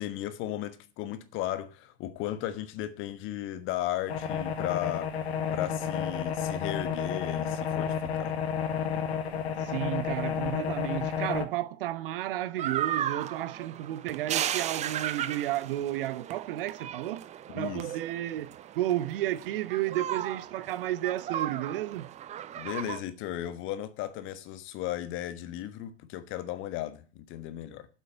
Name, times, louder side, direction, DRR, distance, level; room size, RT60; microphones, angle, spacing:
voice 1, 0.0-5.1 5.5-8.4 17.5-17.9 22.5-27.9, left 13 dB, 35° left, 1.2 m, -35 dB
sound 1, 4.1-11.5, left 7 dB, 60° left, 1.6 m, -31 dB
voice 2, 9.6-17.2 17.5-22.1, right 14 dB, 50° right, 0.9 m, -32 dB
sound 2, 12.6-23.0, right 10 dB, 20° right, 0.7 m, -35 dB
8.2 x 8.1 x 9.0 m
figure-of-eight pair, 90°, 36 cm